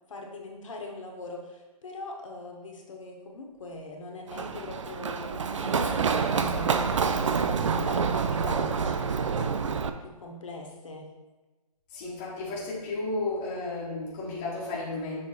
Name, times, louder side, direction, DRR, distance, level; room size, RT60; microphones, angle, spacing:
voice 1, 0.1-9.5 10.0-11.1, left 2 dB, 55° left, 1 dB, 1.1 m, -41 dB
Run, 4.3-9.9, right 5 dB, 50° right, 0.4 m, -27 dB
voice 2, 11.9-15.2, left 2 dB, 15° left, -7 dB, 0.9 m, -33 dB
6.6 x 3.3 x 4.2 m, 1.2 s
hypercardioid pair, 170°, 20 cm